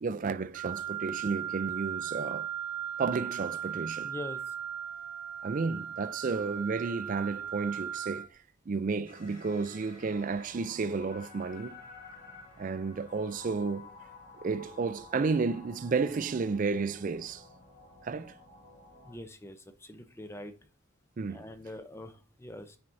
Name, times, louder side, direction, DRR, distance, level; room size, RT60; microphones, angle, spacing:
voice 1, 0.0-2.5 3.0-4.1 5.4-8.3 8.7-11.8 12.6-13.9 14.4-17.4 18.0-18.3 21.2-21.4, right 4 dB, 40° right, 0.4 m, -32 dB
Wind instrument woodwind instrument, 0.5-8.3, right 9 dB, 80° right, 1.0 m, -37 dB
voice 2, 4.0-4.5 19.1-20.5 21.3-22.8, left 1 dB, 15° left, 0.6 m, -44 dB
sound 1, 9.0-19.2, left 3 dB, 45° left, 1.8 m, -52 dB
9.5 x 4.4 x 2.6 m
head